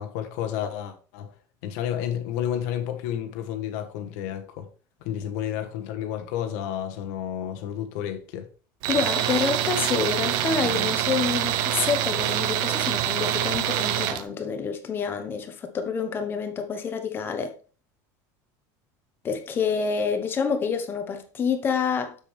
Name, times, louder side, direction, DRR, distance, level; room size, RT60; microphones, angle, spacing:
voice 1, 0.0-1.3 1.6-4.7 5.0-8.5, left 10 dB, 75° left, 1.3 m, -31 dB
Tools, 8.8-14.2, right 12 dB, 55° right, 0.7 m, -25 dB
voice 2, 8.9-17.5 19.2-22.2, left 6 dB, 25° left, 1.1 m, -27 dB
7.3 x 6.8 x 3.4 m
cardioid pair, 165°, 9 cm